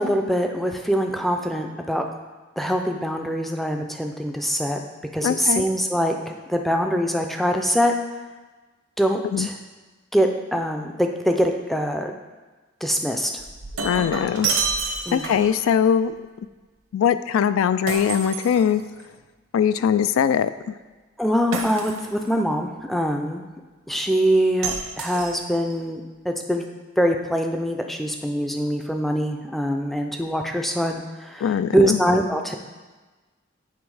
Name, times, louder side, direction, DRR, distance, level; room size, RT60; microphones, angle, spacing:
voice 1, 0.0-2.1 2.6-4.8 5.1-7.9 9.0-9.5 10.1-12.1 12.8-13.3 15.1-15.3 21.2-23.5 23.9-26.6 27.0-32.5, equal, ahead, 4 dB, 0.4 m, -23 dB
voice 2, 5.2-5.6 9.2-9.5 13.8-14.5 15.1-16.1 16.9-18.8 19.5-20.5 31.4-32.0, left 8 dB, 85° left, 14 dB, 0.3 m, -21 dB
Shatter, 13.4-15.6 17.9-19.1 21.5-22.3 24.6-25.7, right 4 dB, 85° right, 0.8 m, -29 dB
8.2 x 3.4 x 4.8 m, 1.3 s
head